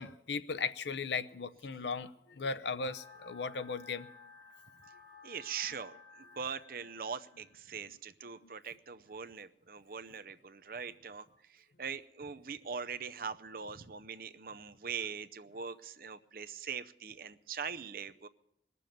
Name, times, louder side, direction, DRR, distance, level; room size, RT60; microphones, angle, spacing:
voice 1, 0.0-4.1 7.9-8.0 8.4-8.5, left 5 dB, 75° left, 13 dB, 0.7 m, -37 dB
sound 1, 2.8-7.8, left 4 dB, 20° left, 3.1 m, -56 dB
voice 2, 5.2-18.3, right 6 dB, 50° right, 12 dB, 0.6 m, -42 dB
20.5 x 6.9 x 9.2 m, 0.80 s
head